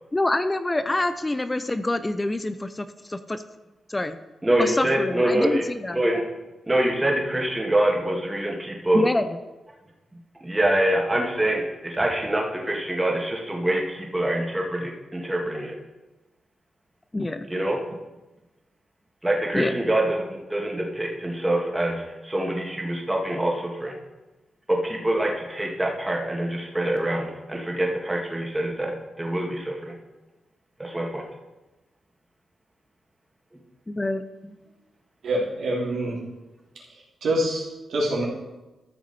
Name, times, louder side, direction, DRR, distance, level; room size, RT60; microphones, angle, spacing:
voice 1, 0.1-3.4 3.9-4.2 4.6-6.0 8.9-9.4 17.1-17.5 19.5-19.8 34.0-34.2, left 2 dB, 20° left, 11 dB, 0.5 m, -26 dB
voice 2, 4.4-5.6 5.9-6.2 6.7-9.1 10.4-15.7 17.5-18.0 19.2-24.0 24.7-29.9 30.8-31.3, right 1 dB, 15° right, -1 dB, 2.1 m, -25 dB
voice 3, 35.2-36.2 37.2-38.2, right 1 dB, 80° right, -5 dB, 3.1 m, -25 dB
13.5 x 5.9 x 4.3 m, 1.1 s
cardioid pair, 75°, 0 cm